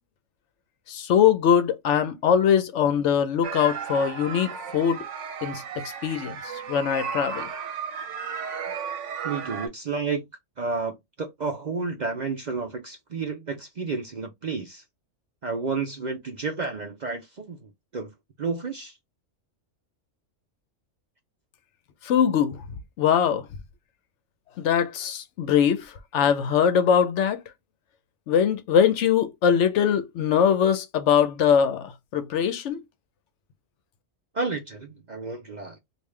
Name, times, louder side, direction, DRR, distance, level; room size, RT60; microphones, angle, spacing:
voice 1, 0.9-5.0 5.4-6.4 6.7-7.5 22.0-22.6 23.0-23.5 24.6-27.4 28.3-32.8, left 8 dB, 70° left, 0.8 m, -22 dB
sound 1, 3.4-9.7, right 6 dB, 65° right, 1.1 m, -34 dB
voice 2, 9.2-10.3 10.6-14.8 15.4-18.1 18.4-18.9 34.3-35.8, right 4 dB, 50° right, 0.6 m, -31 dB
3.5 x 2.5 x 3.1 m
omnidirectional pair, 1.4 m